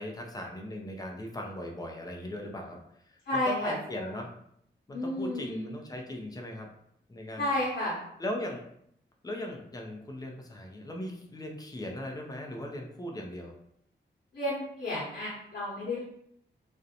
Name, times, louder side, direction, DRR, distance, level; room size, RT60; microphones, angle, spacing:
voice 1, 0.0-4.3 4.9-6.7 7.1-7.5 8.2-8.6 9.2-13.5, left 1 dB, 20° left, 1 dB, 0.4 m, -38 dB
voice 2, 3.3-4.1 4.9-5.7 7.4-8.1 14.3-16.0, left 1 dB, 60° left, -8 dB, 0.8 m, -32 dB
2.4 x 2.0 x 2.8 m, 0.71 s
wide cardioid pair, 145°, 19 cm